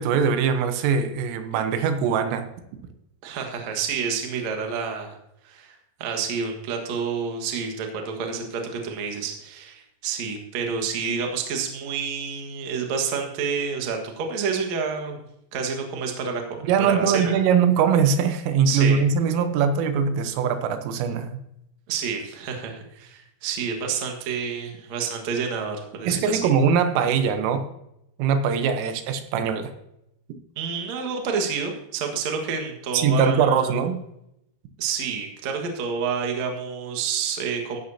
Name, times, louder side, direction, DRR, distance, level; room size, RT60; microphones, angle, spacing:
voice 1, 0.0-2.5 16.7-21.4 26.1-27.7 28.2-29.7 32.9-34.0, right 6 dB, 90° right, 8 dB, 3.6 m, -22 dB
voice 2, 3.2-5.2 5.4-15.2 15.5-16.4 16.9-17.4 18.6-19.0 21.9-26.5 30.5-33.8 34.8-37.8, right 5 dB, 65° right, 3 dB, 1.8 m, -29 dB
15.0 x 10.5 x 2.8 m, 0.82 s
omnidirectional pair, 5.7 m